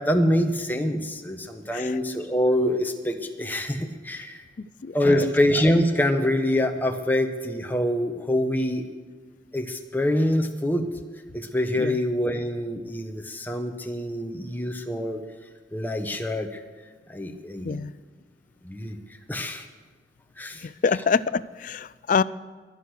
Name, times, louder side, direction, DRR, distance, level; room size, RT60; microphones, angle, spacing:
voice 1, 0.0-4.4 4.9-8.8 9.5-10.8 11.3-15.2 15.7-16.6 17.1-17.8 18.6-19.0 19.3-19.6 20.4-20.6, left 1 dB, 10° left, 5 dB, 1.0 m, -25 dB
voice 2, 4.6-5.3 11.8-12.0 17.6-17.9 20.8-22.2, left 5 dB, 45° left, 18 dB, 0.4 m, -26 dB
23.0 x 8.1 x 6.5 m, 1.4 s
head